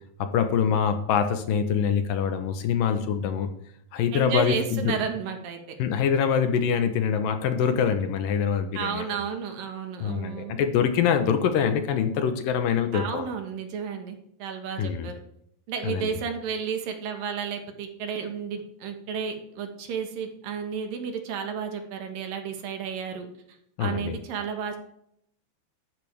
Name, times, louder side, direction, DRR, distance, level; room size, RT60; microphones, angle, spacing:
voice 1, 0.2-3.5 3.9-4.9 5.8-9.0 10.0-13.2 14.8-15.1 15.8-16.1 23.8-24.1, left 7 dB, 75° left, 8 dB, 2.6 m, -24 dB
voice 2, 4.1-5.8 7.6-7.9 8.7-10.6 12.9-15.1 15.7-24.8, right 6 dB, 70° right, 5 dB, 3.1 m, -32 dB
13.0 x 11.5 x 3.5 m, 0.72 s
omnidirectional pair, 4.3 m